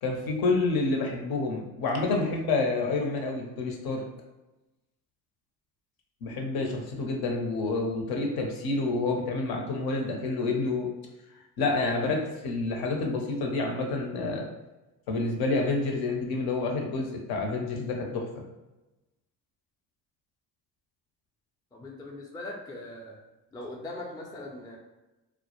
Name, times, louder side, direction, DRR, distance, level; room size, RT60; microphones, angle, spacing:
voice 1, 0.0-4.0 6.2-10.9 11.6-14.5 15.1-18.4, left 3 dB, 60° left, 2 dB, 0.7 m, -28 dB
voice 2, 21.7-23.2 23.5-24.8, left 2 dB, 10° left, -1 dB, 0.4 m, -40 dB
2.1 x 2.0 x 2.9 m, 1.0 s
supercardioid pair, 70°, 41 cm